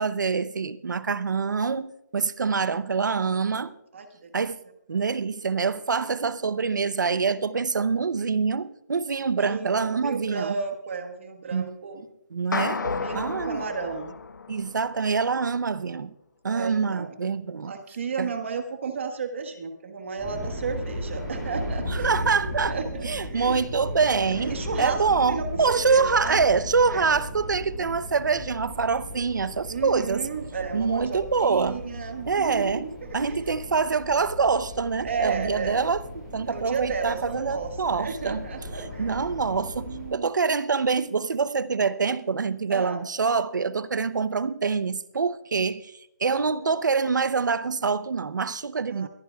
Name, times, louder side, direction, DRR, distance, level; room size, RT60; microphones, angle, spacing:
voice 1, 0.0-3.7 4.3-4.6 4.9-10.5 11.5-11.7 12.3-12.8 13.1-13.6 14.5-16.1 16.4-17.7 18.2-18.3 21.9-22.7 23.0-30.3 30.7-31.8 32.3-32.8 33.1-38.4 38.8-45.9 46.2-49.1, right 5 dB, 80° right, 0.7 m, -25 dB
voice 2, 3.2-3.7 3.9-4.3 6.0-6.3 9.4-12.1 12.8-14.2 16.5-17.1 17.7-22.1 22.4-23.6 24.4-26.4 26.9-27.1 29.7-33.5 35.0-35.8 36.4-39.4 39.8-40.3 42.7-43.0 46.6-46.7 48.9-49.1, right 5 dB, 40° right, 1.4 m, -33 dB
sound 1, 12.5-15.0, left 4 dB, 85° left, 0.9 m, -32 dB
sound 2, 20.2-40.1, left 1 dB, 5° left, 7.0 m, -36 dB
22.0 x 14.5 x 2.3 m
hypercardioid pair, 175°, 10 cm